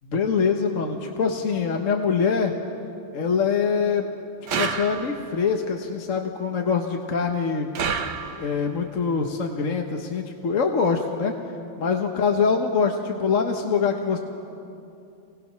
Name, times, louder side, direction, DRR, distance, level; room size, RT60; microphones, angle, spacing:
voice 1, 0.0-2.5 3.1-4.1 4.6-7.8 8.4-11.3 11.8-14.2, left 5 dB, 45° left, 2 dB, 1.3 m, -24 dB
sound 1, 4.5-5.4 7.7-8.7, right 6 dB, 65° right, 1.6 m, -29 dB
28.0 x 20.0 x 5.9 m, 2.7 s
omnidirectional pair, 2.1 m